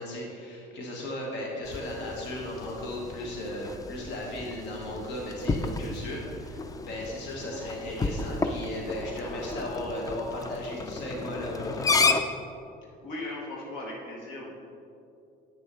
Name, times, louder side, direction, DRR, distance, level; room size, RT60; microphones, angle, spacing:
voice 1, 0.0-11.9, left 1 dB, 65° left, -2 dB, 1.4 m, -36 dB
sound 1, 1.6-12.2, left 3 dB, 20° left, 0.4 m, -32 dB
voice 2, 12.8-14.5, left 2 dB, 80° left, -2 dB, 1.4 m, -38 dB
8.8 x 6.3 x 3.1 m, 2.6 s
supercardioid pair, 100°, 20 cm